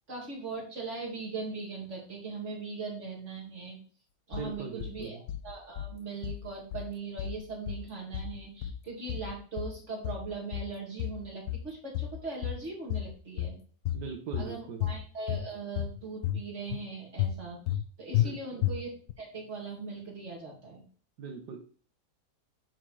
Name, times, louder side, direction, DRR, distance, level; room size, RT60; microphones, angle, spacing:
voice 1, 0.1-3.8 4.3-13.5 14.4-18.9 19.2-20.8, right 4 dB, 45° right, -2 dB, 3.1 m, -40 dB
sound 1, 4.3-4.9 5.3-5.9 6.2-6.9 7.2-7.9 8.1-8.8 9.1-9.8 10.0-10.7 11.0-11.7 11.9-12.6 12.9-13.6 13.9-14.5 14.8-15.5 15.8-16.4 16.7-16.8 17.2-17.8 18.1-18.3 18.6-19.1, left 12 dB, 75° left, 1.1 m, -32 dB
voice 2, 4.3-5.2 13.9-14.8 18.2-18.6 21.2-21.6, right 6 dB, 85° right, 3 dB, 1.7 m, -40 dB
9.5 x 4.0 x 4.8 m, 0.41 s
omnidirectional pair, 1.8 m